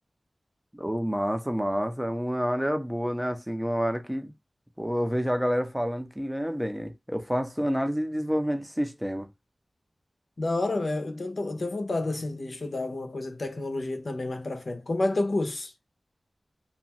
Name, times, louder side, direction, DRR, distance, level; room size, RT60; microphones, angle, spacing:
voice 1, 0.7-4.3 4.8-9.3, equal, 5° right, 0.6 m, -28 dB
voice 2, 10.4-15.7, left 2 dB, 65° left, 0.6 m, -30 dB
2.5 x 2.3 x 2.9 m
wide cardioid pair, 55°, 0 cm